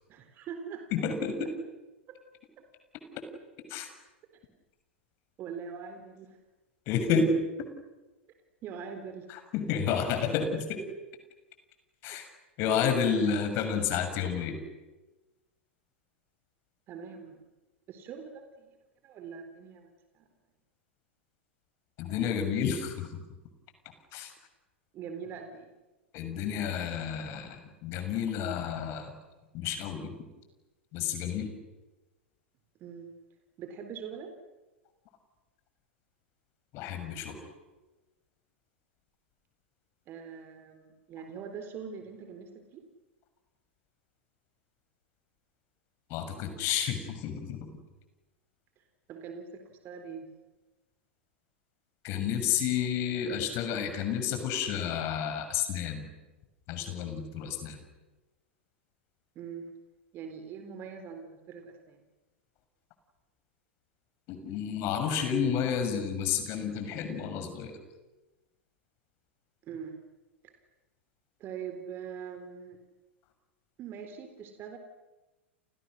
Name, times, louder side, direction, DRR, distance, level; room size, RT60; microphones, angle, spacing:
voice 1, 0.1-0.9 2.1-2.2 5.4-6.4 7.1-7.2 8.6-9.3 16.9-17.4 17.9-18.8 19.0-20.3 24.9-25.7 32.8-33.1 33.6-34.3 40.1-42.8 49.1-50.3 59.4-59.7 60.1-62.0 69.6-70.0 70.4-70.5 71.4-72.8 73.8-74.8, right 6 dB, 35° right, 6 dB, 3.9 m, -42 dB
voice 2, 0.9-1.5 3.7-3.9 6.9-7.3 9.3-10.8 12.0-12.3 12.6-14.6 22.0-23.2 24.1-24.3 26.1-29.1 29.5-30.1 30.9-31.5 36.7-37.4 46.1-47.7 52.0-56.1 56.7-57.8 64.3-67.8, left 7 dB, 40° left, 7 dB, 6.6 m, -30 dB
30.0 x 30.0 x 6.6 m, 1.1 s
figure-of-eight pair, 100°, 7 cm